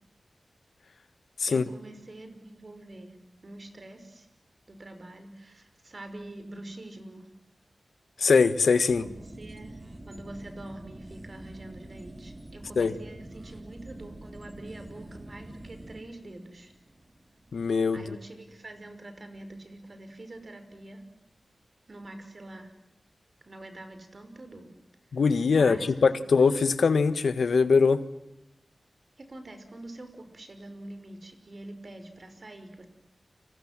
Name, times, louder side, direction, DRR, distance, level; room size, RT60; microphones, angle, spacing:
voice 1, 1.5-4.3 4.7-7.3 9.0-16.7 17.9-21.0 21.9-22.7 23.4-24.7 25.5-26.3 29.2-32.9, right 1 dB, 45° right, 8 dB, 5.6 m, -45 dB
voice 2, 8.2-9.0 12.8-12.9 17.5-18.0 25.1-28.0, left 5 dB, 85° left, 12 dB, 1.5 m, -22 dB
sound 1, 8.9-19.8 20.0-20.1, right 1 dB, 30° right, 2.6 m, -47 dB
30.0 x 25.5 x 7.7 m, 0.86 s
wide cardioid pair, 75°, 0 cm